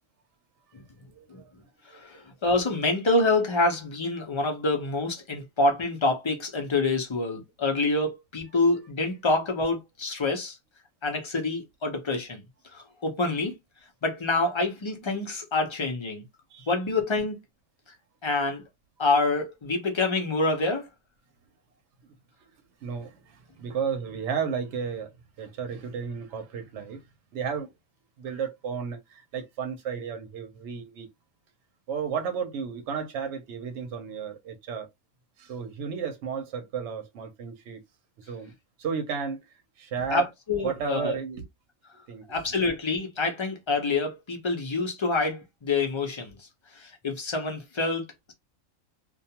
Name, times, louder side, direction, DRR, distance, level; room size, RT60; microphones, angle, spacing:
voice 1, 1.1-1.5 1.9-2.0 16.5-16.7 22.8-25.1 25.4-27.0 27.3-27.7 28.2-31.1 31.9-34.9 35.4-37.8 38.3-38.5 38.8-39.4 39.8-40.3 40.6-41.4 42.1-42.3, right 6 dB, 65° right, 0.9 m, -33 dB
voice 2, 1.9-10.6 11.0-12.4 12.7-13.5 14.0-16.2 16.7-17.4 18.2-18.6 19.0-20.9 40.1-41.2 42.3-46.4 46.8-48.3, left 3 dB, 40° left, 0.4 m, -27 dB
2.4 x 2.3 x 2.8 m
omnidirectional pair, 1.4 m